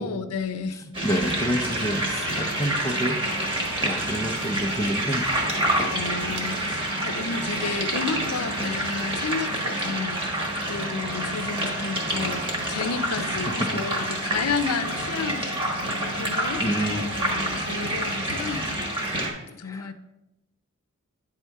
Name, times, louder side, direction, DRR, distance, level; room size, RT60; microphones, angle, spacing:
voice 1, 0.0-0.8 5.9-10.3 10.7-12.4 12.7-15.5 15.9-19.2 19.5-19.9, left 5 dB, 90° left, 10 dB, 0.5 m, -32 dB
sound 1, 0.9-19.3, right 1 dB, 25° right, 1.4 m, -28 dB
voice 2, 1.0-3.2 3.8-5.3 16.6-17.0 19.6-19.9, equal, 15° left, 2 dB, 0.5 m, -28 dB
9.2 x 3.6 x 4.6 m, 0.93 s
head